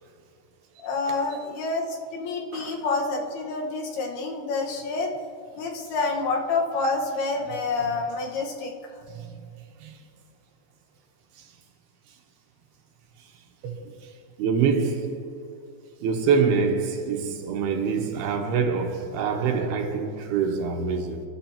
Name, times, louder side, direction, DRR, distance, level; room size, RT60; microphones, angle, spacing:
voice 1, 0.8-5.1 5.6-8.7, left 3 dB, 70° left, 3.2 m, -28 dB
voice 2, 2.5-2.8 9.1-9.5 9.8-10.0 13.6-13.7 14.4-15.2 16.0-21.2, right 5 dB, 75° right, 2.9 m, -25 dB
28.0 x 12.5 x 2.9 m
omnidirectional pair, 4.9 m